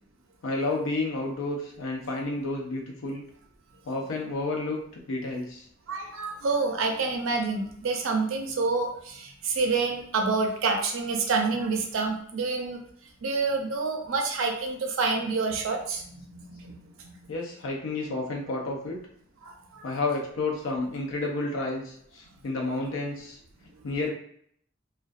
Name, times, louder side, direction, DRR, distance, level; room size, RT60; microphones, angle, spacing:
voice 1, 0.4-3.2 3.9-4.8 5.1-5.7 17.3-19.0 19.8-23.4 23.8-24.1, left 2 dB, 80° left, -1 dB, 0.5 m, -30 dB
voice 2, 5.9-12.8 13.2-17.3 19.4-19.9, right 4 dB, 80° right, 3 dB, 0.5 m, -28 dB
2.5 x 2.2 x 2.2 m, 0.66 s
head